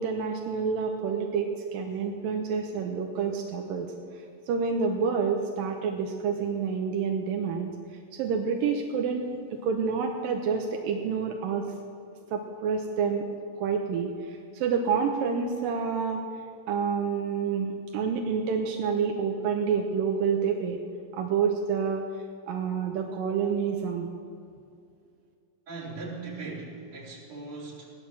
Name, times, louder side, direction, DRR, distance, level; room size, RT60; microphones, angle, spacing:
voice 1, 0.0-3.9 4.5-7.7 8.1-9.4 9.6-11.7 12.3-13.3 13.5-16.2 16.7-20.8 21.1-22.1 22.5-24.1, right 6 dB, 80° right, 3 dB, 2.0 m, -28 dB
voice 2, 25.7-27.9, right 3 dB, 30° right, -6 dB, 4.3 m, -39 dB
18.5 x 10.5 x 7.4 m, 2.4 s
omnidirectional pair, 5.2 m